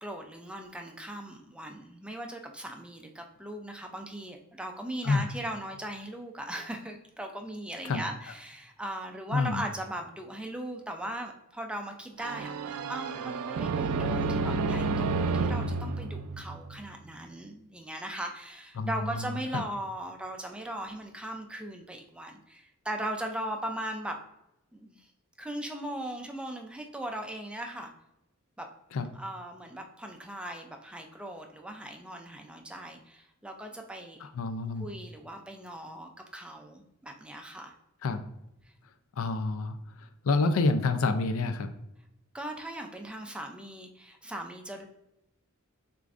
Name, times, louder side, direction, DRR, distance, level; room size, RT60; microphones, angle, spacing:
voice 1, 0.0-12.5 12.9-24.2 24.7-25.1 25.4-27.9 28.6-28.7 29.1-34.2 34.7-37.7 42.3-44.9, right 1 dB, 5° right, 3 dB, 0.4 m, -38 dB
voice 2, 9.3-9.6 18.8-19.2 19.5-19.6 28.9-29.1 34.2-34.9 38.0-38.2 39.2-39.8 40.2-41.7, left 3 dB, 70° left, 9 dB, 0.4 m, -28 dB
sound 1, 12.2-17.0, right 3 dB, 75° right, 0.3 m, -30 dB
6.5 x 2.5 x 2.5 m, 0.83 s
head